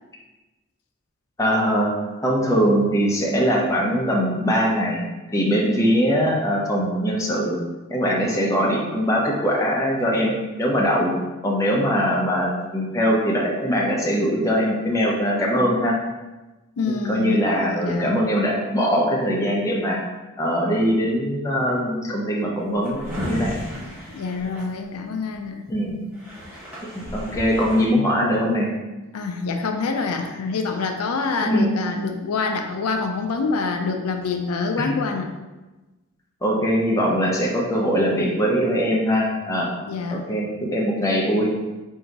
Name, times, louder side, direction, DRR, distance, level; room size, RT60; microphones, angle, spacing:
voice 1, 1.4-1.9 2.2-5.0 5.3-7.6 7.9-10.3 10.6-11.1 11.4-16.0 16.8-20.0 20.4-23.5 25.7-26.0 26.8-28.7 31.4-31.7 34.8-34.9 36.4-39.7 40.1-41.5, equal, 15° left, -3 dB, 0.6 m, -21 dB
voice 2, 16.8-18.2 24.1-25.6 29.1-35.3 39.9-40.3, left 4 dB, 80° left, 4 dB, 0.4 m, -26 dB
Drawer open or close, 22.6-25.3 25.9-26.0 26.1-27.8, equal, 10° right, 1.0 m, -33 dB
3.8 x 2.7 x 4.5 m, 1.1 s
head